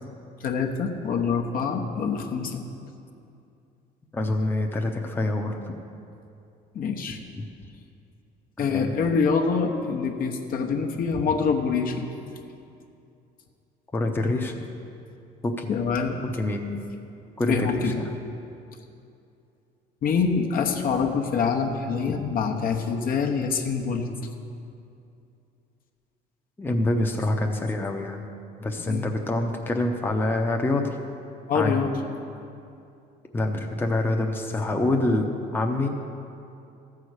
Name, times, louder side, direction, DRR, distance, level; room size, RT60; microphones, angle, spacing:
voice 1, 0.4-2.6 6.7-7.2 8.6-12.1 15.7-16.2 17.5-18.0 20.0-24.1 28.9-29.1 31.5-31.9, left 5 dB, 60° left, 2 dB, 1.1 m, -25 dB
voice 2, 4.1-5.6 7.4-7.5 8.7-8.9 13.9-14.5 15.4-15.7 16.4-16.7 17.4-18.2 26.6-28.3 28.6-30.9 31.5-31.8 33.3-35.9, left 2 dB, 10° left, 2 dB, 0.8 m, -26 dB
13.5 x 4.9 x 8.0 m, 2.6 s
cardioid pair, 110°, 17 cm